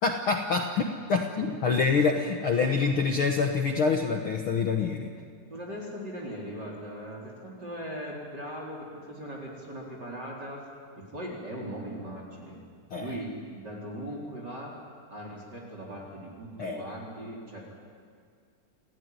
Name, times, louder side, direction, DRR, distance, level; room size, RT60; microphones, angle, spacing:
voice 1, 0.0-5.1 12.9-13.1 16.6-16.9, left 4 dB, 65° left, 3 dB, 1.3 m, -26 dB
voice 2, 5.5-10.6 11.0-12.6 12.9-14.7 15.1-17.6, equal, 30° right, -2 dB, 4.3 m, -39 dB
28.0 x 17.0 x 9.5 m, 2.2 s
omnidirectional pair, 4.0 m